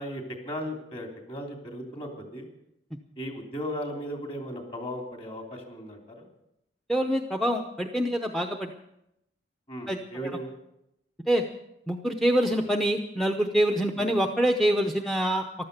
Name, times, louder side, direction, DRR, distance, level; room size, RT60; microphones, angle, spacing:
voice 1, 0.0-2.5 3.2-6.3 9.7-10.5 13.9-14.2, equal, 30° left, 2 dB, 3.0 m, -36 dB
voice 2, 6.9-8.7 9.9-10.3 11.3-11.4 11.9-15.4, right 1 dB, ahead, 5 dB, 0.7 m, -25 dB
14.5 x 12.0 x 6.7 m, 0.84 s
head